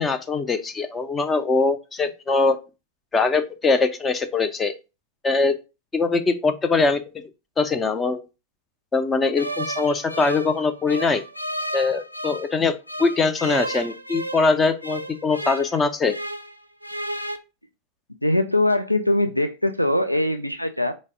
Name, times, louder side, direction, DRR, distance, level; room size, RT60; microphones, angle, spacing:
voice 1, 0.0-2.6 3.1-4.7 5.2-5.6 5.9-7.0 7.6-8.2 8.9-11.2 11.7-16.1, left 4 dB, 15° left, 11 dB, 0.4 m, -22 dB
sound 1, 9.4-12.5 12.9-16.5 16.8-17.4, right 1 dB, 90° right, 0.3 m, -32 dB
voice 2, 18.2-20.9, left 1 dB, 90° left, 7 dB, 0.3 m, -22 dB
4.0 x 2.1 x 3.6 m, 0.28 s
figure-of-eight pair, 90°, 0 cm